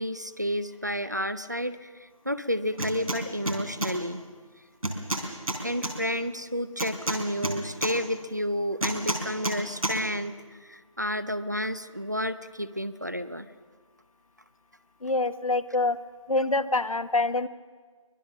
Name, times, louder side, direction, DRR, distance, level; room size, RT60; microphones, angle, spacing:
voice 1, 0.0-4.2 5.6-13.5, equal, 30° right, 13 dB, 0.5 m, -31 dB
sound 1, 2.8-3.2 3.5-3.9 4.8-5.9 6.8-7.9 8.8-9.6 9.8-10.0, right 1 dB, 85° right, 3.9 m, -29 dB
voice 2, 15.0-16.0 16.3-17.5, left 2 dB, 75° left, 12 dB, 1.1 m, -25 dB
24.0 x 21.0 x 6.3 m, 1.5 s
figure-of-eight pair, 175°, 18 cm